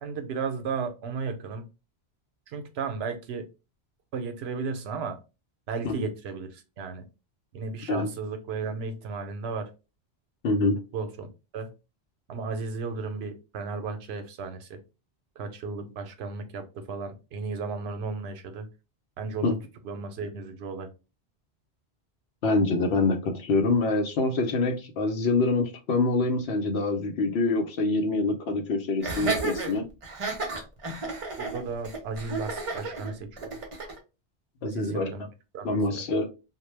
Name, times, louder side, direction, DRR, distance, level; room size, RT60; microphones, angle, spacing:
voice 1, 0.0-1.6 2.5-3.4 4.1-5.2 5.7-7.0 7.5-9.7 10.9-11.3 11.5-11.7 12.3-14.8 15.4-18.7 19.2-19.6 19.8-20.9 31.4-33.6 34.6-35.3 35.5-36.0, right 4 dB, 80° right, 7 dB, 0.8 m, -34 dB
voice 2, 10.4-10.8 19.4-19.5 22.4-29.8 34.6-35.1 35.6-36.3, left 3 dB, 80° left, 5 dB, 0.9 m, -25 dB
Laughter, 29.0-34.0, right 3 dB, 40° right, 0.6 m, -32 dB
2.2 x 2.1 x 3.1 m, 0.29 s
omnidirectional pair, 1.1 m